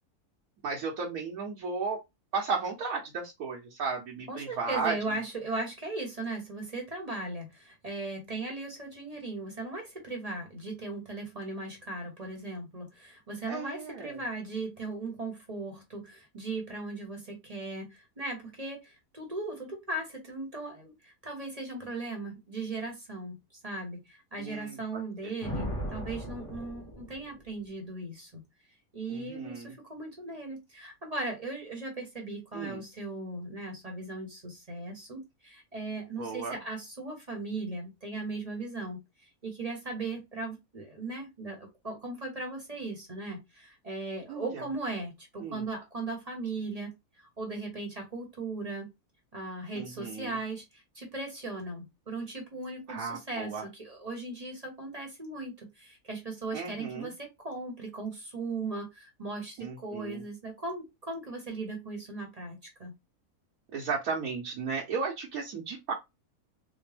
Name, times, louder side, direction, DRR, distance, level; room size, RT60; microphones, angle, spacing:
voice 1, 0.6-2.0 2.3-4.9 13.5-14.2 24.4-24.8 29.1-29.7 32.5-32.8 36.2-36.6 44.3-44.6 45.4-45.6 49.7-50.4 52.9-53.6 56.5-57.1 59.6-60.2 63.7-65.9, right 5 dB, 70° right, 1.2 m, -34 dB
voice 2, 4.3-23.4 23.6-28.4 28.9-48.9 49.3-62.9, right 2 dB, 30° right, 0.9 m, -38 dB
Thunder, 25.4-27.6, equal, 35° left, 1.5 m, -37 dB
4.2 x 2.1 x 3.2 m
omnidirectional pair, 1.6 m